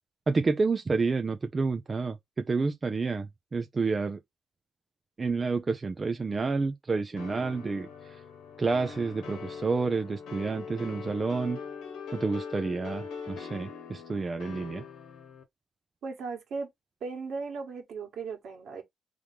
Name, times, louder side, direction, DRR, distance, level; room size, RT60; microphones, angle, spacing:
voice 1, 0.3-4.2 5.2-8.2 8.6-11.6 12.1-14.8, right 4 dB, 30° right, 0.5 m, -29 dB
sound 1, 7.2-15.4, left 6 dB, 85° left, 1.0 m, -42 dB
voice 2, 16.0-16.7 17.0-18.8, right 4 dB, 70° right, 1.6 m, -37 dB
3.6 x 3.2 x 3.5 m
cardioid pair, 90°, 0 cm